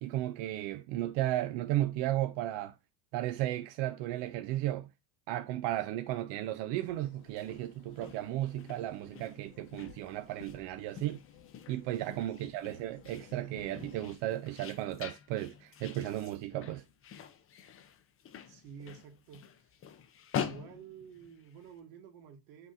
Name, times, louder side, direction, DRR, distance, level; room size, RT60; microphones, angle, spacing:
voice 1, 0.0-2.7 3.1-4.9 5.3-11.2 11.7-16.8, right 14 dB, 60° right, 0.5 m, -34 dB
sound 1, 6.8-14.2, left 9 dB, 65° left, 0.8 m, -57 dB
sound 2, 7.3-21.7, left 8 dB, 30° left, 0.5 m, -45 dB
voice 2, 12.1-12.5 18.5-19.7 20.4-22.7, right 7 dB, 80° right, 1.2 m, -51 dB
5.9 x 2.8 x 2.4 m
supercardioid pair, 105°, 50 cm